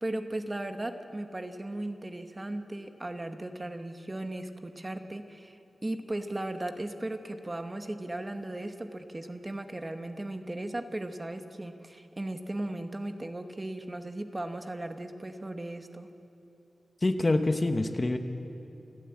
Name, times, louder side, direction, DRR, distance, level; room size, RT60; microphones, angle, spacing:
voice 1, 0.0-16.1, right 1 dB, 20° right, 7 dB, 0.9 m, -37 dB
voice 2, 17.0-18.2, left 2 dB, 25° left, 7 dB, 0.9 m, -26 dB
28.5 x 11.0 x 8.8 m, 2.9 s
wide cardioid pair, 155°, 0 cm